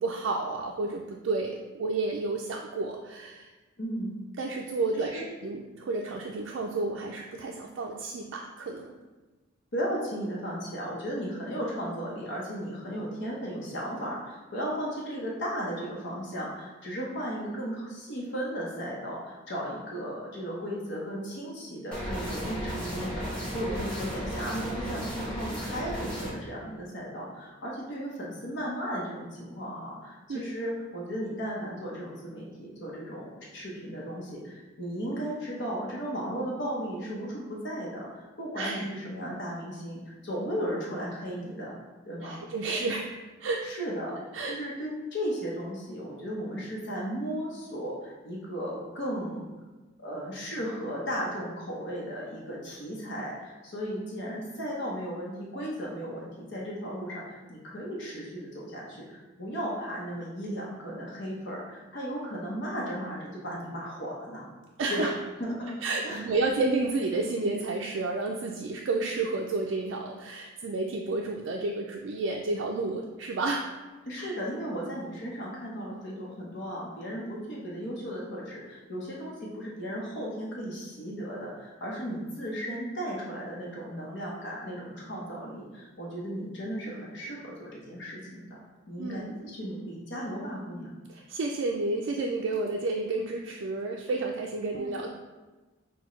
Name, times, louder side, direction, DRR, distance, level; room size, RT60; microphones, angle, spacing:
voice 1, 0.0-3.5 4.4-8.9 30.3-30.4 38.6-38.9 42.2-43.1 43.4-43.7 44.3-44.6 64.8-65.1 65.8-73.6 74.2-74.3 89.0-89.5 91.1-95.1, right 3 dB, 65° right, 0 dB, 0.3 m, -31 dB
voice 2, 3.8-4.1 4.9-5.2 9.7-41.8 42.1-42.4 43.6-44.2 44.5-49.5 50.0-64.5 64.9-65.1 65.4-65.7 66.0-66.2 74.1-88.6 88.9-90.9 94.7-94.9, equal, 60° left, -4 dB, 0.9 m, -35 dB
sound 1, 21.9-26.3, equal, 5° left, 1.2 m, -34 dB
6.1 x 2.3 x 3.1 m, 1.2 s
head